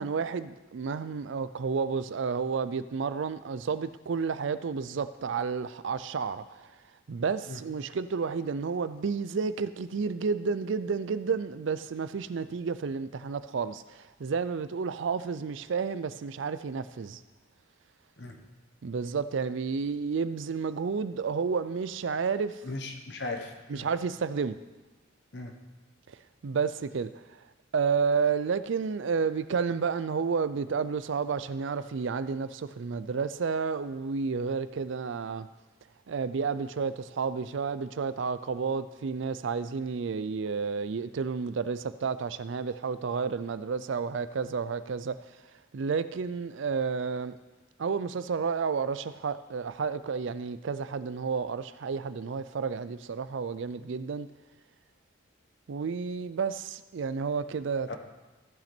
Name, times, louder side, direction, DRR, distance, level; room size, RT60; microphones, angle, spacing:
voice 1, 0.0-6.7 7.1-17.2 18.8-22.6 23.7-24.6 26.1-27.5 27.7-35.5 36.1-45.4 45.7-47.4 47.8-54.3 55.7-58.0, right 5 dB, 65° right, 0.4 m, -31 dB
voice 2, 22.6-23.9 25.3-25.5 57.9-58.0, left 2 dB, 55° left, 1.2 m, -37 dB
14.5 x 5.9 x 4.4 m
head